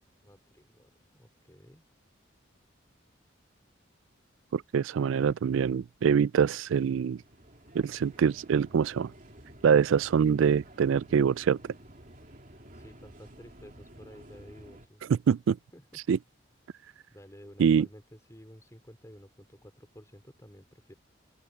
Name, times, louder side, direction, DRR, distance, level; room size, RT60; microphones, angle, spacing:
voice 1, 0.2-1.8 5.0-5.1 12.7-15.1 15.7-15.8 17.1-20.9, equal, 15° left, 4.5 m, -52 dB
voice 2, 4.5-7.2 7.7-9.1 9.6-11.6 15.1-15.6 16.1-16.2 17.6-17.9, right 7 dB, 75° right, 0.3 m, -24 dB
sound 1, 6.6-14.9, right 1 dB, 40° right, 3.0 m, -52 dB
open air
head